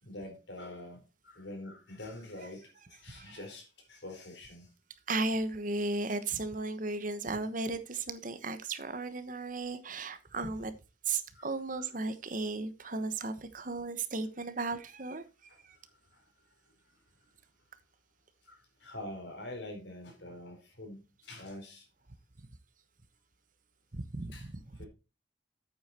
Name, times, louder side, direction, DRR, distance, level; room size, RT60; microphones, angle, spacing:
voice 1, 0.0-4.7 11.3-11.5 11.8-11.9 12.8-12.9 15.5-16.3 16.9-17.1 18.4-21.9 24.3-24.5 24.7-24.9, left 1 dB, 75° left, 2 dB, 4.4 m, -46 dB
voice 2, 3.1-3.4 5.1-10.7 11.1-15.3 15.7-15.8 23.9-24.5, right 3 dB, 45° right, 11 dB, 1.2 m, -35 dB
8.7 x 8.3 x 4.4 m, 0.29 s
head